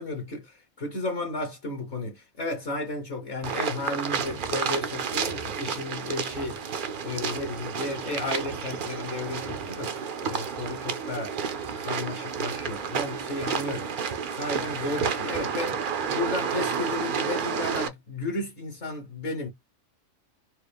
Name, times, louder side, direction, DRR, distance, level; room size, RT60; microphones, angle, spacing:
voice 1, 0.0-6.6 7.0-11.4 11.8-13.9 14.3-15.8 16.1-19.5, left 2 dB, 55° left, 1.3 m, -33 dB
sound 1, 3.4-17.9, right 6 dB, 60° right, 0.5 m, -31 dB
4.5 x 2.0 x 3.4 m
omnidirectional pair, 1.5 m